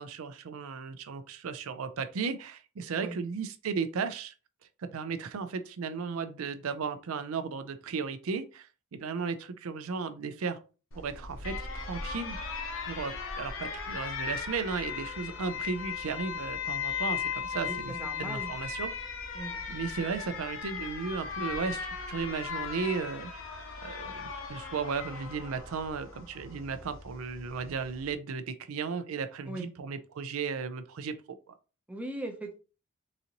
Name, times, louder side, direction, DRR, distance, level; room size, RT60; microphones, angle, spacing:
voice 1, 0.0-4.3 4.8-10.6 11.0-12.5 12.9-18.9 19.7-23.3 23.8-31.2, right 5 dB, 75° right, 0.4 m, -35 dB
Alarm, 10.9-28.1, left 6 dB, 60° left, 0.7 m, -37 dB
voice 2, 17.5-18.5 19.3-19.6 29.5-29.7 31.9-32.6, right 2 dB, 5° right, 0.5 m, -39 dB
4.0 x 2.6 x 2.8 m
head